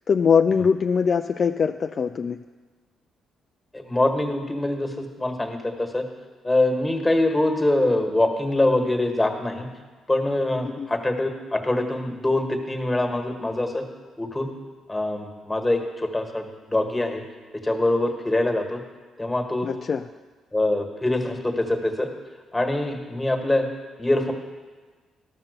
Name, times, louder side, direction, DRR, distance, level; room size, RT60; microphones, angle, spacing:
voice 1, 0.1-2.4 10.7-10.9 19.6-20.0, left 6 dB, 45° left, 7 dB, 0.3 m, -22 dB
voice 2, 3.7-6.1 6.4-9.7 10.1-13.8 14.2-14.5 14.9-17.2 17.6-18.8 19.2-19.7 20.5-22.1 22.5-23.7 24.0-24.3, left 1 dB, 10° left, 3 dB, 1.6 m, -24 dB
13.0 x 5.8 x 6.6 m, 1.4 s
cardioid pair, 90°, 0 cm